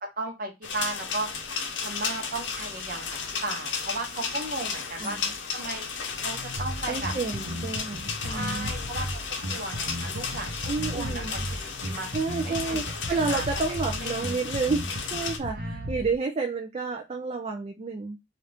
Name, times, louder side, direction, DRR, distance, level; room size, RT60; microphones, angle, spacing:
voice 1, 0.0-1.3 1.8-5.2 5.5-5.9 6.2-7.1 8.3-9.2 9.5-12.1 12.4-12.8 13.3-14.3 15.5-16.0, right 2 dB, 50° right, 3 dB, 0.8 m, -35 dB
sound 1, 0.6-15.4, left 5 dB, 75° left, 0.7 m, -34 dB
sound 2, 5.9-15.4, left 3 dB, 30° left, 0.6 m, -46 dB
Bass guitar, 6.6-16.1, equal, 80° right, 0.8 m, -35 dB
voice 2, 6.9-8.7 10.7-11.4 12.1-18.2, right 4 dB, 30° right, 3 dB, 0.4 m, -30 dB
2.9 x 2.5 x 3.3 m, 0.23 s
head